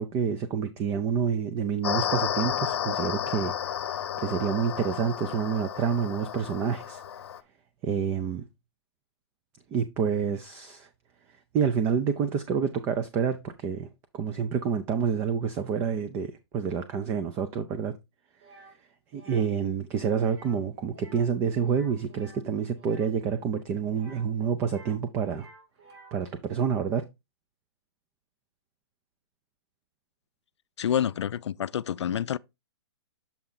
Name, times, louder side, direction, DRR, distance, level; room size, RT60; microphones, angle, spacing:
voice 1, 0.0-3.5 4.2-7.0 7.8-8.4 9.7-10.9 11.5-13.9 14.1-17.9 19.1-25.5 26.1-27.0, right 6 dB, 15° right, 0.4 m, -28 dB
sound 1, 1.8-7.4, left 9 dB, 65° left, 0.8 m, -32 dB
sound 2, 18.4-18.7 19.1-19.5 20.2-20.6 20.9-21.3 21.6-23.1 23.9-25.0 25.3-26.2, right 2 dB, 75° right, 3.3 m, -53 dB
voice 2, 30.8-32.4, left 9 dB, 90° left, 0.4 m, -28 dB
7.0 x 4.3 x 3.8 m
hypercardioid pair, 155°, 14 cm